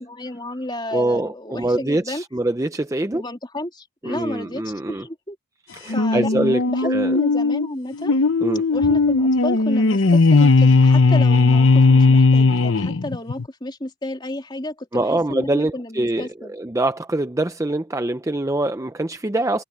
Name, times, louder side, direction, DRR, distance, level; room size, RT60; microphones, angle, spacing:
voice 1, 0.0-2.2 3.1-5.4 5.9-6.3 6.7-8.2 8.7-16.5, left 1 dB, 20° left, 3.0 m, -32 dB
voice 2, 0.9-3.2 4.0-5.1 5.7-7.2 8.4-8.6 14.9-19.6, right 1 dB, 15° right, 0.5 m, -24 dB
sound 1, 5.9-13.4, left 3 dB, 65° left, 0.8 m, -16 dB
head